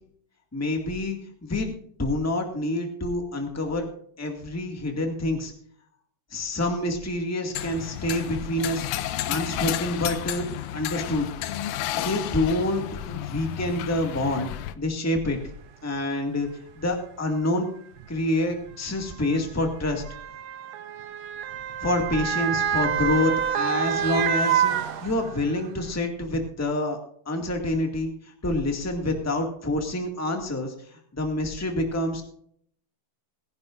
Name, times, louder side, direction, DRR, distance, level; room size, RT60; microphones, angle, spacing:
voice 1, 0.5-3.9 4.2-5.5 6.3-8.9 9.3-10.4 10.7-11.3 11.9-14.5 14.8-15.4 15.8-16.5 16.7-17.7 18.1-20.0 21.8-24.7 25.0-27.0 27.2-30.7 31.1-32.2, left 1 dB, 10° left, 3 dB, 1.1 m, -27 dB
sound 1, 7.5-14.7, left 12 dB, 75° left, 1.8 m, -32 dB
Motor vehicle (road) / Siren, 15.6-15.7 16.7-16.9 18.0-25.6 26.0-26.1, right 8 dB, 75° right, 1.6 m, -28 dB
20.5 x 11.0 x 2.6 m, 0.63 s
omnidirectional pair, 3.9 m